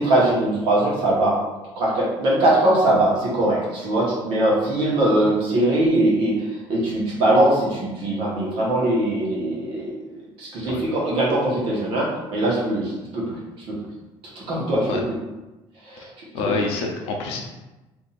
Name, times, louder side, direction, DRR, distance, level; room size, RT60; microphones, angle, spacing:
voice 1, 0.0-1.4 1.7-6.4 6.7-10.0 10.4-13.3 13.7-13.8 14.3-15.2 15.9-16.1, right 1 dB, 60° right, -4 dB, 1.2 m, -21 dB
voice 2, 16.3-17.4, left 3 dB, 85° left, 1 dB, 0.7 m, -26 dB
2.7 x 2.6 x 4.0 m, 1.1 s
cardioid pair, 170°, 10 cm